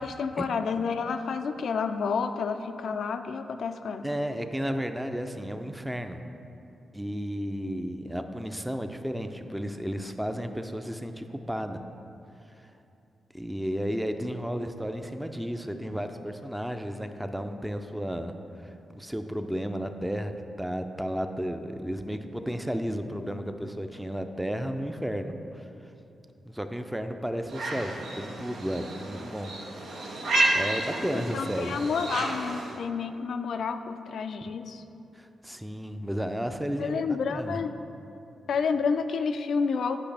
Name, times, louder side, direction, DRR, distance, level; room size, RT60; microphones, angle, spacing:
voice 1, 0.0-4.0 31.3-34.8 36.8-37.7 38.5-40.0, left 5 dB, 70° left, 9 dB, 0.3 m, -29 dB
voice 2, 4.0-6.2 6.9-11.8 12.4-12.7 13.3-25.9 26.4-29.5 30.5-31.8 35.1-37.6, equal, 5° right, 7 dB, 0.5 m, -33 dB
sound 1, 27.5-32.8, right 2 dB, 80° right, 0.8 m, -31 dB
8.5 x 5.1 x 3.4 m, 2.7 s
supercardioid pair, 45°, 0 cm